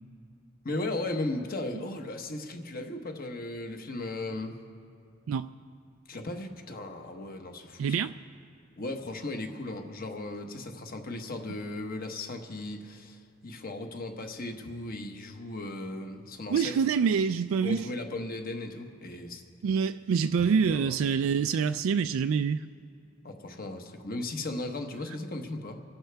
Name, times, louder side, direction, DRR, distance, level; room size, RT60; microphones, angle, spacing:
voice 1, 0.6-4.6 6.1-8.0 8.8-16.8 17.6-19.4 20.4-20.9 23.2-25.8, left 2 dB, 45° left, 1.2 m, -36 dB
voice 2, 7.8-8.1 16.5-17.9 19.6-22.6, right 6 dB, 70° right, 0.3 m, -26 dB
26.5 x 11.5 x 3.4 m
head